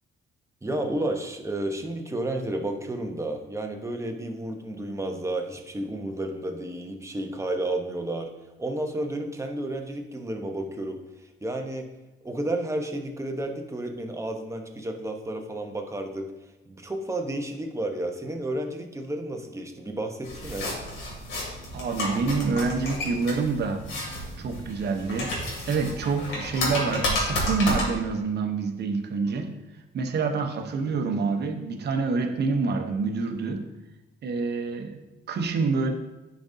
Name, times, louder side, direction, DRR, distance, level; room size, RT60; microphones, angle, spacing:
voice 1, 0.6-8.3 8.6-11.0 11.4-11.9 12.2-16.3 16.7-20.7, right 1 dB, 15° right, 3 dB, 1.0 m, -31 dB
sound 1, 20.2-27.9, left 1 dB, 80° left, 2.6 m, -31 dB
voice 2, 21.7-23.9 24.4-25.3 25.7-29.5 29.9-33.7 34.2-35.0 35.3-35.9, right 4 dB, 60° right, 5 dB, 1.0 m, -27 dB
10.0 x 5.2 x 2.7 m, 1.1 s
cardioid pair, 90°, 20 cm